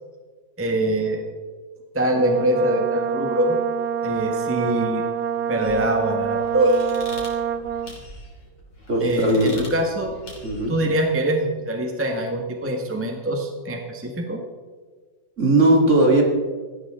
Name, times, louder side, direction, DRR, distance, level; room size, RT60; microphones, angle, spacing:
voice 1, 0.6-1.2 1.9-3.6 4.0-5.0 5.5-6.7 9.0-10.1 10.7-14.4, right 1 dB, 10° right, 2 dB, 1.4 m, -23 dB
Brass instrument, 2.1-8.0, right 8 dB, 70° right, 1.1 m, -26 dB
sound 1, 5.6-10.8, left 1 dB, 70° left, 3.9 m, -42 dB
voice 2, 8.9-9.6 10.4-10.8 15.4-16.2, right 1 dB, 40° right, 1 dB, 2.6 m, -18 dB
17.5 x 14.5 x 3.7 m, 1.4 s
omnidirectional pair, 2.0 m